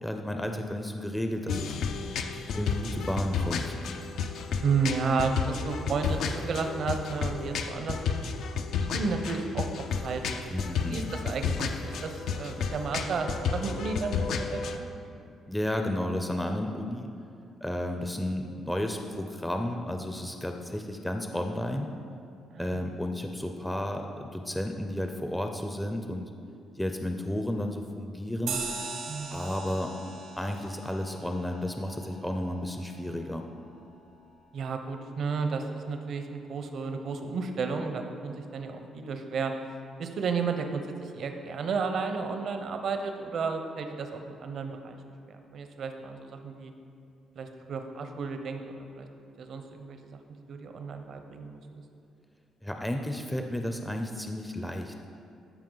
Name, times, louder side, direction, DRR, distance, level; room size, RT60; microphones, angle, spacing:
voice 1, 0.0-1.8 2.5-3.8 10.5-11.0 15.5-17.1 17.6-21.9 22.5-26.3 26.8-28.6 29.3-29.9 30.4-33.4 52.6-54.9, left 1 dB, 5° left, 4 dB, 0.5 m, -32 dB
sound 1, 1.5-14.8, left 5 dB, 75° left, 0.5 m, -32 dB
voice 2, 4.6-8.3 8.8-10.2 10.7-14.9 22.5-22.8 29.1-29.4 34.5-39.5 40.0-45.0 45.3-46.7 47.4-49.1 49.4-50.2 50.5-51.6, right 4 dB, 60° right, 6 dB, 0.7 m, -32 dB
sound 2, 28.5-33.4, right 4 dB, 85° right, 1.2 m, -40 dB
13.0 x 4.5 x 3.9 m, 2.5 s
cardioid pair, 90°, 0 cm